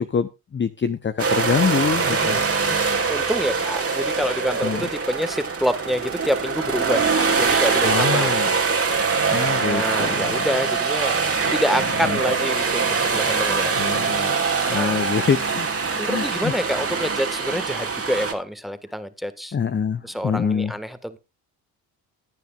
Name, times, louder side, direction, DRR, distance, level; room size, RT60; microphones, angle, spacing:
voice 1, 0.0-2.4 4.6-4.9 7.8-8.5 9.3-10.5 12.1-12.2 13.7-14.3 14.7-15.7 16.0-16.5 19.5-20.7, left 6 dB, 25° left, 11 dB, 0.7 m, -25 dB
sound 1, 1.2-18.3, right 4 dB, 30° right, 2.2 m, -23 dB
voice 2, 2.1-8.6 9.6-14.0 14.7-15.0 15.9-19.5 20.0-21.2, equal, ahead, 10 dB, 1.6 m, -27 dB
18.0 x 9.3 x 2.5 m, 0.25 s
hypercardioid pair, 60°, 47 cm